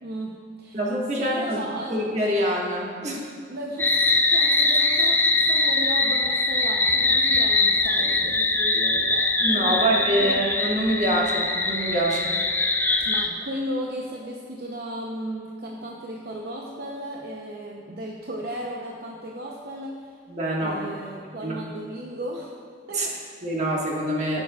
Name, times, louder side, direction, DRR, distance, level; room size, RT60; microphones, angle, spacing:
voice 1, 0.0-0.8 1.1-2.0 3.5-10.5 13.0-20.1 20.6-22.6 22.9-23.4, right 1 dB, 55° right, -1 dB, 0.7 m, -35 dB
voice 2, 0.7-1.6 1.9-3.3 9.4-12.3 20.3-20.8 21.4-21.6 22.9-23.1 23.4-24.4, right 1 dB, 40° right, -3 dB, 1.5 m, -25 dB
sound 1, 3.8-13.3, left 3 dB, 10° left, 0.4 m, -22 dB
17.5 x 6.9 x 2.4 m, 2.1 s
head